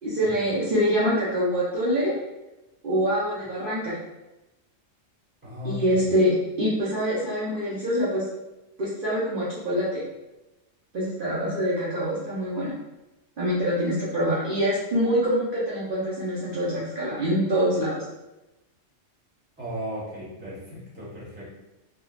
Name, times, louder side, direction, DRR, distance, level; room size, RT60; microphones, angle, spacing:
voice 1, 0.0-2.1 2.8-4.0 5.6-8.3 8.8-10.0 10.9-12.7 13.4-18.0, equal, 50° right, -9 dB, 0.8 m, -25 dB
voice 2, 5.4-6.1 19.6-21.5, left 1 dB, 10° right, -9 dB, 1.0 m, -36 dB
3.6 x 2.3 x 2.3 m, 0.99 s
omnidirectional pair, 1.3 m